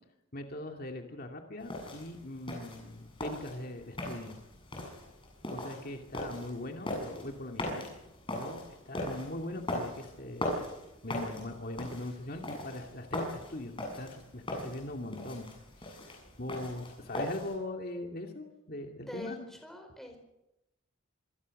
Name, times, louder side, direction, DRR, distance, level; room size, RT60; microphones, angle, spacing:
voice 1, 0.3-4.4 5.5-7.9 8.3-10.6 11.0-15.5 15.8-19.5, left 1 dB, 45° left, 3 dB, 2.5 m, -41 dB
sound 1, 1.6-17.5, left 1 dB, 25° left, 7.5 m, -40 dB
voice 2, 19.0-20.2, left 1 dB, ahead, 3 dB, 4.8 m, -44 dB
26.5 x 22.0 x 6.6 m, 0.91 s
head